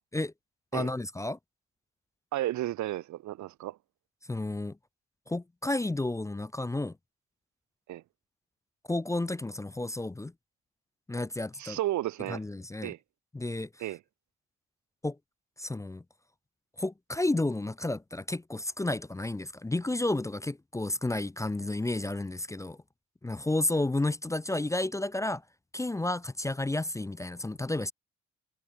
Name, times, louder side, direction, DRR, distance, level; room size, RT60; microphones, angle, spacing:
voice 1, 0.7-1.4 4.3-4.8 5.3-6.9 8.9-10.3 11.1-11.8 12.3-12.9 13.3-13.7 15.0-15.2 15.6-16.0 16.8-22.8 23.2-25.4 25.7-27.9, left 2 dB, 10° left, 0.5 m, -31 dB
voice 2, 2.3-3.8 7.9-8.0 11.6-12.4 12.8-13.0 13.8-14.0, right 15 dB, 70° right, 0.7 m, -33 dB
cardioid pair, 90°, 30 cm